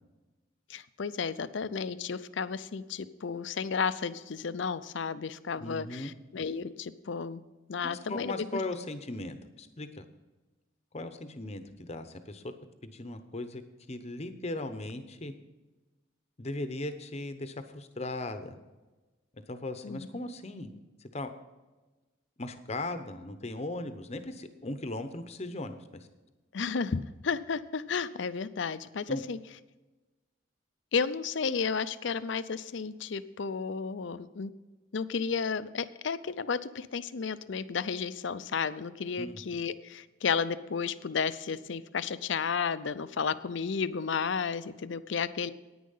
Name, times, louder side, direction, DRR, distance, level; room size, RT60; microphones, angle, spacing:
voice 1, 0.7-7.4 7.7-8.4 19.8-20.1 26.5-29.4 30.9-34.5 34.9-45.5, left 5 dB, 60° left, 14 dB, 0.5 m, -33 dB
voice 2, 5.6-6.1 7.8-10.1 10.9-12.5 12.8-13.6 13.9-15.3 16.4-18.6 19.4-21.3 22.4-26.1 29.1-29.2 39.2-39.4, left 2 dB, 30° left, 9 dB, 0.8 m, -38 dB
10.0 x 9.5 x 5.6 m, 1.2 s
head